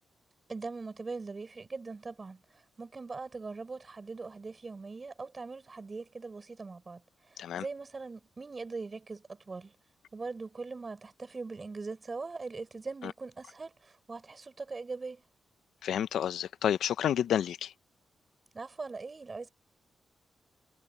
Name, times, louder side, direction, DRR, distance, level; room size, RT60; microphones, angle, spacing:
voice 1, 0.5-2.4 2.8-7.0 7.3-9.7 10.1-15.2 18.5-19.5, right 4 dB, 40° right, 6.3 m, -41 dB
voice 2, 15.8-17.7, left 10 dB, 75° left, 1.0 m, -30 dB
supercardioid pair, 45°, 0 cm